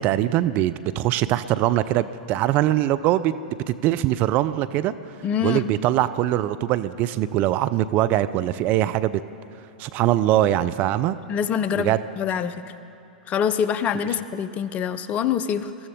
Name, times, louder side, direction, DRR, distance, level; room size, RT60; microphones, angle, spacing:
voice 1, 0.0-3.3 3.7-4.9 5.4-9.2 9.8-11.2 11.7-12.0, right 13 dB, 40° right, 14 dB, 0.4 m, -22 dB
voice 2, 5.2-5.7 11.3-12.5 13.3-15.7, left 8 dB, 30° left, 13 dB, 0.6 m, -25 dB
22.5 x 14.0 x 3.6 m, 2.8 s
figure-of-eight pair, 100°, 5 cm